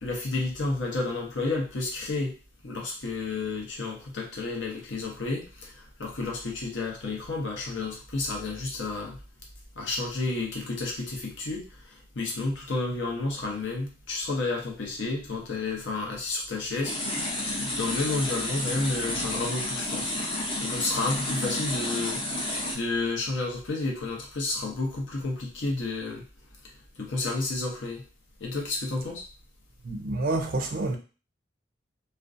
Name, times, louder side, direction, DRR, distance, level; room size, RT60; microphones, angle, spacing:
voice 1, 0.0-2.4 2.6-9.2 9.8-20.1 20.6-26.2 27.0-28.0 28.4-29.2, left 3 dB, 70° left, 0.7 m, -31 dB
sound 1, 16.8-22.7, left 1 dB, 25° left, 0.5 m, -31 dB
voice 2, 29.8-31.0, right 2 dB, 45° right, 0.4 m, -28 dB
2.5 x 2.1 x 2.4 m
head